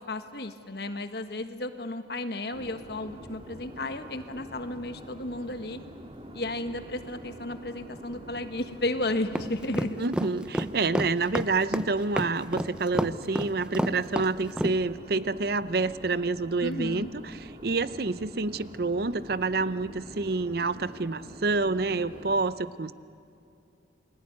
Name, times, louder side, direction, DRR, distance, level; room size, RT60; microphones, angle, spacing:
voice 1, 0.0-5.8 6.3-10.0 16.6-17.1, left 2 dB, 60° left, 8 dB, 1.5 m, -33 dB
sound 1, 2.5-22.4, equal, 30° right, 2.4 m, -46 dB
sound 2, 9.3-14.8, equal, 5° right, 0.6 m, -29 dB
voice 2, 10.0-22.9, right 3 dB, 55° right, 15 dB, 0.7 m, -28 dB
29.0 x 21.5 x 9.6 m, 2.6 s
head